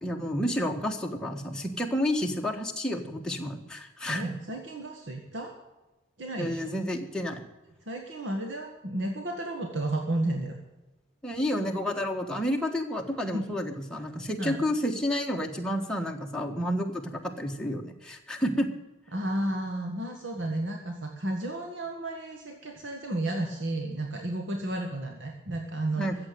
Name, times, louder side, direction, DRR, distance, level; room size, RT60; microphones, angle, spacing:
voice 1, 0.0-4.3 6.4-7.4 11.2-18.7 26.0-26.2, equal, 5° left, 0 dB, 1.5 m, -30 dB
voice 2, 4.1-5.6 6.2-6.7 7.9-10.6 13.3-13.4 14.4-14.6 19.1-26.1, right 1 dB, 65° right, 3 dB, 1.7 m, -32 dB
14.5 x 7.8 x 9.2 m, 1.1 s
head